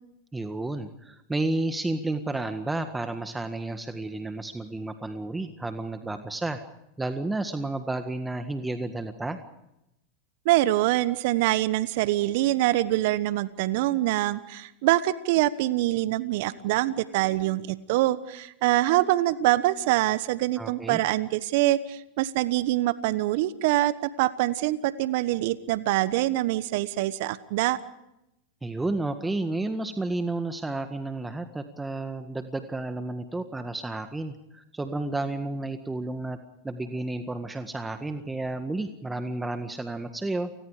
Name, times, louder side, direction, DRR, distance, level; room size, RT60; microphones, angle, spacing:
voice 1, 0.3-6.6 7.0-9.4 20.6-21.0 28.6-36.4 36.6-40.5, right 2 dB, 10° right, 8 dB, 1.7 m, -31 dB
voice 2, 10.4-27.8, right 16 dB, 60° right, 15 dB, 1.1 m, -24 dB
30.0 x 20.0 x 5.0 m, 0.86 s
hypercardioid pair, 95°, 0 cm